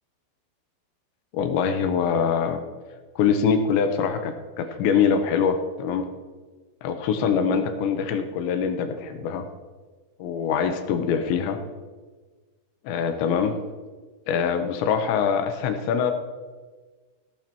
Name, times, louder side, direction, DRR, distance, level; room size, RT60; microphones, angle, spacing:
voice 1, 1.3-2.6 3.2-6.1 6.8-9.5 10.2-11.6 12.8-13.6 14.3-16.1, left 6 dB, 85° left, 7 dB, 3.1 m, -24 dB
17.0 x 11.0 x 3.0 m, 1.4 s
omnidirectional pair, 5.2 m